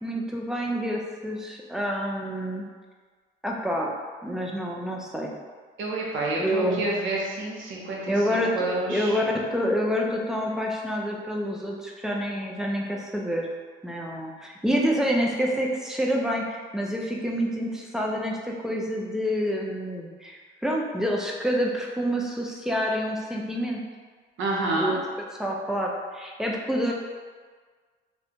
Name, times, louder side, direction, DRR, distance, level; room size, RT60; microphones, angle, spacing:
voice 1, 0.0-2.6 3.4-3.9 4.2-5.3 6.4-6.8 8.1-13.5 13.8-23.8 24.8-25.0 25.4-26.9, equal, 5° right, -1 dB, 0.4 m, -27 dB
voice 2, 5.8-9.2 24.4-25.0, right 2 dB, 80° right, -3 dB, 0.7 m, -29 dB
2.4 x 2.2 x 2.8 m, 1.5 s
cardioid pair, 90°, 20 cm